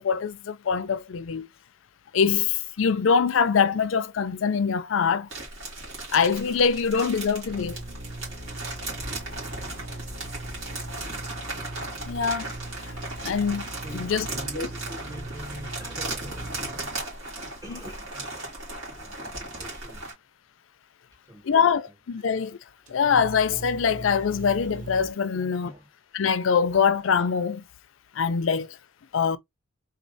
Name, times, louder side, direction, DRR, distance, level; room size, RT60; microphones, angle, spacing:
voice 1, 0.0-1.5 2.1-5.3 6.1-7.8 12.1-12.5 13.2-13.7 13.9-14.2 21.5-22.6 22.9-25.7 26.1-27.6 28.2-28.8 29.1-29.4, left 6 dB, 75° left, 0.4 m, -23 dB
sound 1, 5.3-20.1, right 2 dB, 80° right, 2.7 m, -37 dB
sound 2, 7.5-17.0 22.9-25.1, right 1 dB, 35° right, 0.9 m, -40 dB
voice 2, 10.7-11.4 13.8-17.0 17.6-18.5 19.0-20.2 21.2-21.9 25.3-25.9 28.5-28.6, equal, 20° right, 1.7 m, -44 dB
4.1 x 3.1 x 2.6 m
head